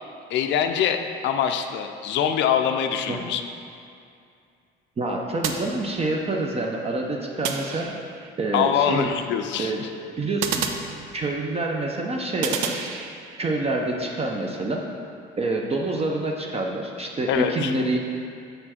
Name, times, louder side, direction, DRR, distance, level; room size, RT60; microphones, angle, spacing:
voice 1, 0.3-3.4 8.5-9.9 17.3-17.7, left 8 dB, 60° left, 6 dB, 0.5 m, -24 dB
voice 2, 5.0-8.0 8.4-9.1 9.6-9.9 10.2-10.6 11.1-12.9 13.4-14.8 15.4-18.0, right 2 dB, 30° right, 0 dB, 0.6 m, -27 dB
sound 1, 5.4-6.4 7.4-8.3 10.4-11.5 12.4-13.5, right 6 dB, 90° right, 0.5 m, -31 dB
6.5 x 4.3 x 4.3 m, 2.4 s
supercardioid pair, 85°, 21 cm